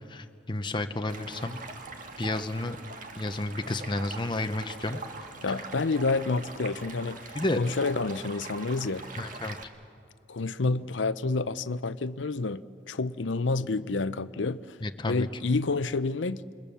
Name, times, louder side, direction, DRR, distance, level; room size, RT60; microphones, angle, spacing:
voice 1, 0.1-1.6 2.2-2.8 3.2-5.0 7.3-7.6 9.2-9.6 14.8-15.3, left 2 dB, 25° left, 7 dB, 0.8 m, -31 dB
Stream, 1.1-9.6, right 3 dB, 45° right, 1.7 m, -42 dB
voice 2, 5.4-9.0 10.3-12.6 12.9-14.8 15.0-16.4, left 3 dB, 80° left, 15 dB, 0.7 m, -29 dB
28.0 x 22.5 x 7.0 m, 2.3 s
head